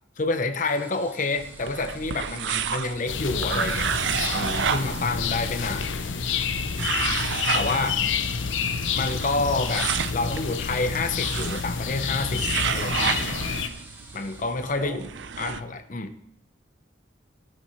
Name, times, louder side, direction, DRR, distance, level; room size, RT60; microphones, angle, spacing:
voice 1, 0.2-3.9 4.3-5.9 7.5-7.9 8.9-12.5 12.7-13.6 14.1-15.0 15.4-16.2, left 3 dB, 40° left, 8 dB, 0.7 m, -28 dB
sound 1, 0.6-14.4, right 1 dB, 10° right, 1.2 m, -47 dB
sound 2, 1.4-15.6, right 7 dB, 70° right, 0.5 m, -31 dB
sound 3, 3.1-13.7, left 6 dB, 80° left, 0.6 m, -28 dB
voice 2, 7.7-8.6 14.8-15.3, right 1 dB, 40° right, 5 dB, 1.1 m, -43 dB
17.5 x 6.6 x 3.1 m, 0.71 s
head